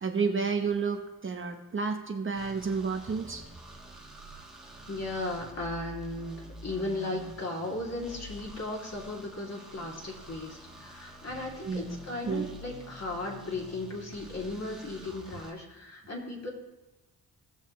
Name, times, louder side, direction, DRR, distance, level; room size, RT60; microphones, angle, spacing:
voice 1, 0.0-3.4 11.6-12.5, right 5 dB, 35° right, 3 dB, 0.8 m, -31 dB
sound 1, 2.3-15.5, equal, ahead, 1.6 m, -48 dB
voice 2, 4.9-16.5, left 2 dB, 40° left, -2 dB, 2.6 m, -36 dB
18.0 x 6.4 x 3.1 m, 1.1 s
cardioid pair, 90°, 38 cm